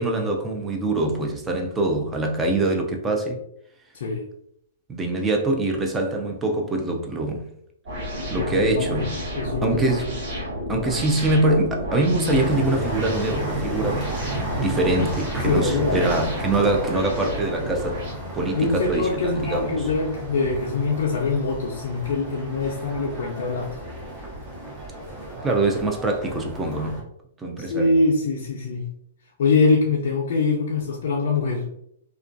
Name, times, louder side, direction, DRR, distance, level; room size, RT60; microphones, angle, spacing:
voice 1, 0.0-3.4 4.9-7.4 8.3-9.2 9.6-10.2 10.7-14.1 14.6-18.0 18.3-19.8 25.4-27.0 27.4-27.9, right 2 dB, 15° right, 0.4 m, -24 dB
voice 2, 3.9-4.3 8.3-9.0 9.4-10.0 15.4-16.1 18.5-23.8 27.6-28.9 29.4-31.7, left 3 dB, 70° left, 0.4 m, -24 dB
sound 1, 7.9-18.1, left 1 dB, 60° right, 1.4 m, -31 dB
sound 2, 12.3-27.0, right 2 dB, 35° right, 0.8 m, -33 dB
2.4 x 2.2 x 2.5 m
hypercardioid pair, 135°, 0 cm